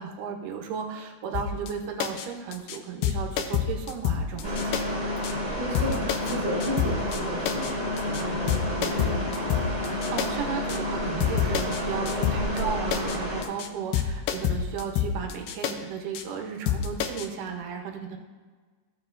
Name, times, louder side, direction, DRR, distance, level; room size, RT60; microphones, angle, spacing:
voice 1, 0.0-4.8 9.8-18.2, right 6 dB, 80° right, 3 dB, 2.5 m, -35 dB
sound 1, 1.3-1.7 2.0-2.3 2.5-2.8 3.0-4.8 5.2-5.3 5.7-6.3 6.6-7.2 7.5-7.7 8.0-8.2 8.5-10.3 10.7-10.8 11.2-11.8 12.1-12.6 12.9-13.2 13.4-13.7 13.9-15.7 16.1-16.2 16.7-17.3, left 9 dB, 80° left, 2.2 m, -28 dB
sound 2, 4.4-13.4, left 1 dB, 25° right, 0.6 m, -30 dB
voice 2, 5.6-9.3, right 1 dB, 45° right, -4 dB, 2.4 m, -33 dB
14.5 x 6.9 x 2.5 m, 1.5 s
omnidirectional pair, 3.7 m